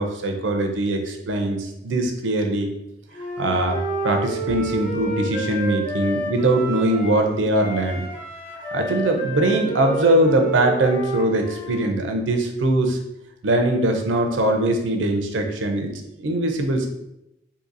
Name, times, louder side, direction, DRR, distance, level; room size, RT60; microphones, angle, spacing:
voice 1, 0.0-2.7 3.4-8.0 8.7-13.0 13.4-15.9 16.2-16.9, right 1 dB, 85° right, 4 dB, 0.5 m, -21 dB
Wind instrument woodwind instrument, 3.1-7.2 7.5-11.8, right 2 dB, 45° left, 0.9 m, -29 dB
2.8 x 2.7 x 3.9 m, 0.85 s
head